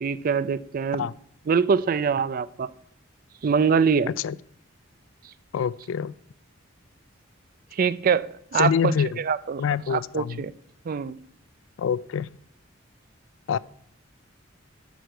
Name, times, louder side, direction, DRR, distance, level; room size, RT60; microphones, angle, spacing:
voice 1, 0.0-1.1 1.5-2.7 3.4-4.1 7.7-9.6 9.9-10.5 10.9-11.2, right 6 dB, 45° right, 17 dB, 0.4 m, -24 dB
voice 2, 5.5-6.1 8.6-9.2 9.6-10.4 11.8-12.3 13.5-13.6, left 7 dB, 70° left, 20 dB, 0.3 m, -26 dB
10.5 x 4.8 x 8.0 m, 0.68 s
head